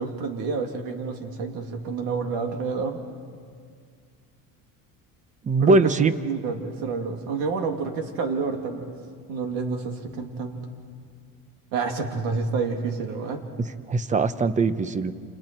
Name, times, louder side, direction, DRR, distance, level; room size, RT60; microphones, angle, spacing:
voice 1, 0.0-3.0 5.6-5.9 6.2-9.0 9.3-10.6 11.7-13.4, right 4 dB, 75° right, 4 dB, 2.9 m, -29 dB
voice 2, 5.4-6.1 13.9-15.1, right 3 dB, 20° right, 13 dB, 0.8 m, -21 dB
29.5 x 27.5 x 4.5 m, 2.1 s
cardioid pair, 140°, 36 cm